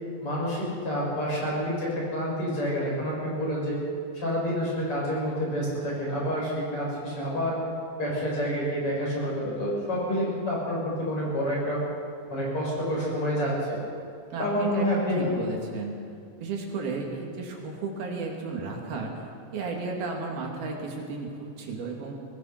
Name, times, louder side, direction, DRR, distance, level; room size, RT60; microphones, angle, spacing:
voice 1, 0.2-3.8 4.1-7.6 8.0-11.8 12.3-13.6 14.4-15.3, equal, 35° left, -5 dB, 8.1 m, -28 dB
voice 2, 14.3-16.0 16.4-19.1 19.5-22.2, right 4 dB, 90° right, 0 dB, 4.5 m, -34 dB
24.5 x 18.5 x 6.0 m, 2.3 s
omnidirectional pair, 4.2 m